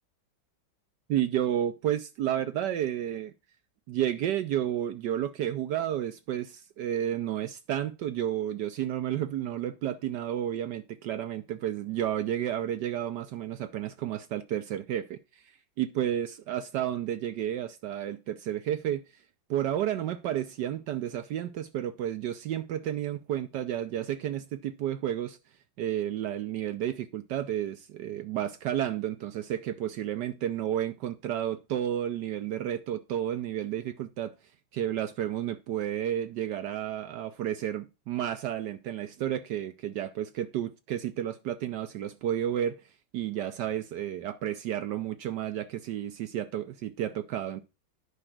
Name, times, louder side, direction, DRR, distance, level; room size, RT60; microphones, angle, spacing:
voice 1, 1.1-3.3 3.9-15.2 15.8-19.0 19.5-25.4 25.8-34.4 34.7-42.8 43.1-47.6, right 11 dB, 70° right, 1.1 m, -31 dB
10.0 x 5.0 x 5.9 m
omnidirectional pair, 2.3 m